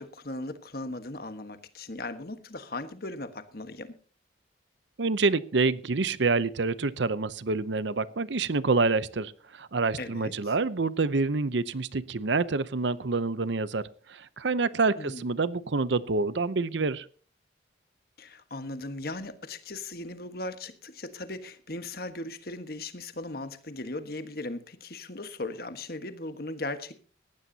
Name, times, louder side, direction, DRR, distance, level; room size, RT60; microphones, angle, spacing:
voice 1, 0.0-4.0 10.0-10.5 15.0-15.3 18.2-27.0, left 2 dB, 50° left, 1.5 m, -38 dB
voice 2, 5.0-17.1, right 3 dB, 70° right, 0.7 m, -27 dB
19.5 x 15.5 x 2.8 m
head